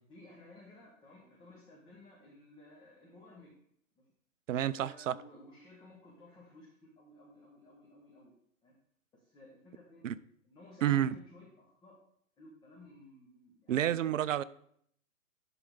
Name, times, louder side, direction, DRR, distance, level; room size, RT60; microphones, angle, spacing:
voice 1, 0.1-3.5 4.0-4.1 4.6-8.3 8.6-8.7 9.1-10.1 10.4-12.0 12.4-13.9, left 1 dB, 10° left, 1.2 m, -56 dB
voice 2, 4.5-5.1 10.0-10.2 10.8-11.1 13.7-14.4, right 11 dB, 65° right, 0.5 m, -29 dB
11.5 x 3.9 x 3.7 m
figure-of-eight pair, 125°, 42 cm